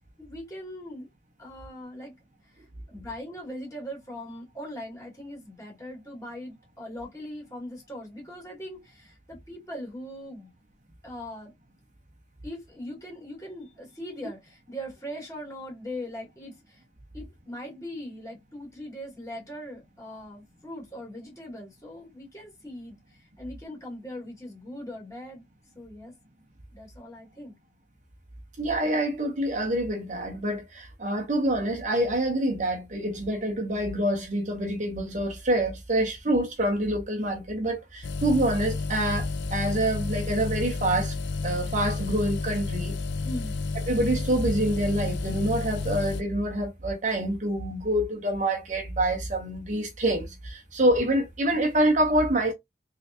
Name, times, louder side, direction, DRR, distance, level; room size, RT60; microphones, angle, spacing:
voice 1, 0.2-1.1 1.4-2.1 2.5-10.5 11.0-11.5 12.4-16.8 17.1-25.4 25.8-26.1 26.7-27.5 43.2-43.6, equal, 20° left, 2.0 m, -40 dB
voice 2, 28.6-41.1 41.4-43.0 43.8-52.5, right 1 dB, 45° right, 0.9 m, -26 dB
sound 1, 38.0-46.2, left 3 dB, 80° left, 0.5 m, -31 dB
3.8 x 3.3 x 2.8 m
head